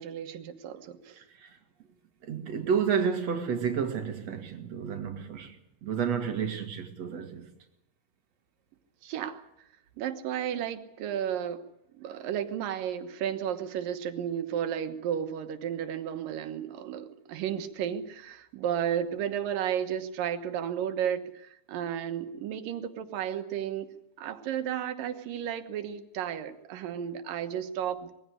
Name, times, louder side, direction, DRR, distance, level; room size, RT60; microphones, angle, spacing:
voice 1, 0.0-1.2 9.0-9.4 10.0-11.6 11.9-23.9 24.2-28.1, right 9 dB, 85° right, 3.0 m, -33 dB
voice 2, 1.2-1.5 2.2-5.6 5.8-7.5, right 7 dB, 55° right, 2.8 m, -30 dB
21.5 x 16.0 x 9.8 m
omnidirectional pair, 3.8 m